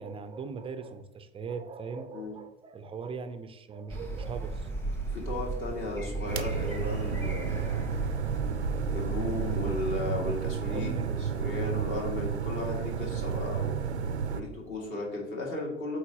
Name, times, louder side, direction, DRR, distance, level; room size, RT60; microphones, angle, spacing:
voice 1, 0.0-4.7 10.6-11.2 11.8-11.9 12.8-12.9 14.2-14.4, right 5 dB, 15° right, 10 dB, 0.5 m, -40 dB
sound 1, 3.9-10.0, right 2 dB, 5° left, 1.3 m, -36 dB
voice 2, 5.1-7.9 8.9-10.9 11.2-13.8 14.3-16.0, left 2 dB, 40° left, -1 dB, 2.2 m, -35 dB
sound 2, 6.3-14.4, right 7 dB, 85° right, 0.5 m, -32 dB
8.1 x 4.3 x 2.8 m, 0.91 s
figure-of-eight pair, 75°, 32 cm